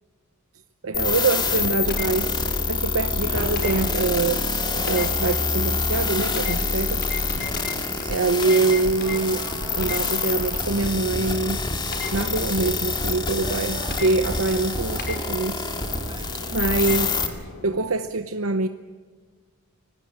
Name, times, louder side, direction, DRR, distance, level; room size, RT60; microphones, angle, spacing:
voice 1, 0.8-4.5 4.8-7.0 8.1-9.4 9.7-11.6 12.1-15.6 16.3-18.7, right 3 dB, 65° right, 9 dB, 0.9 m, -24 dB
sound 1, 0.9-17.3, left 4 dB, 20° left, 2.3 m, -26 dB
sound 2, 1.3-17.8, left 3 dB, 50° left, 4.8 m, -38 dB
sound 3, 3.1-17.3, right 3 dB, 20° right, 1.4 m, -41 dB
25.5 x 19.0 x 8.7 m, 1.5 s
head